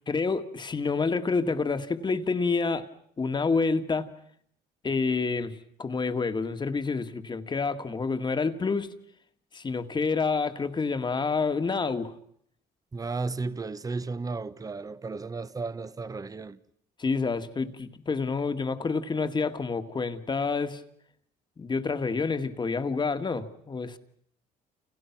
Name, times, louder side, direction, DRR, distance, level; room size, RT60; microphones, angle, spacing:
voice 1, 0.1-2.9 3.2-4.1 4.8-8.9 9.5-12.1 17.0-20.8 21.6-24.0, left 4 dB, 25° left, 1.9 m, -28 dB
voice 2, 12.9-16.6, right 3 dB, 20° right, 1.2 m, -34 dB
30.0 x 30.0 x 6.0 m
cardioid pair, 110°, 17 cm